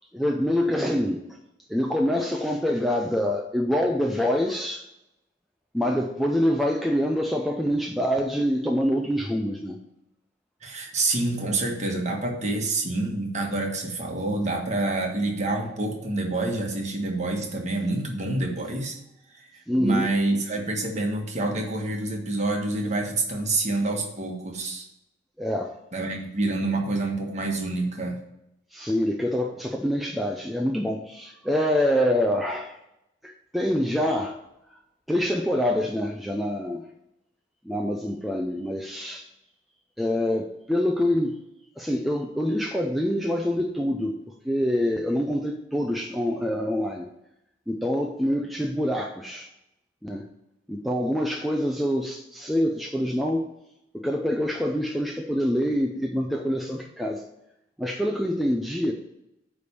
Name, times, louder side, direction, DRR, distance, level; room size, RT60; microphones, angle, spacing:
voice 1, 0.1-1.2 1.7-4.8 5.7-9.8 19.7-20.1 25.4-25.7 28.7-32.8 33.2-34.4 35.1-36.8 37.6-39.3 40.0-41.4 41.8-47.1 47.7-49.5 50.0-50.2 50.7-53.5 53.9-57.2 57.8-58.9, equal, ahead, 1 dB, 0.5 m, -25 dB
voice 2, 10.6-19.0 19.3-24.8 25.9-28.2, right 2 dB, 35° right, 1 dB, 1.5 m, -27 dB
9.2 x 3.4 x 6.9 m, 0.85 s
head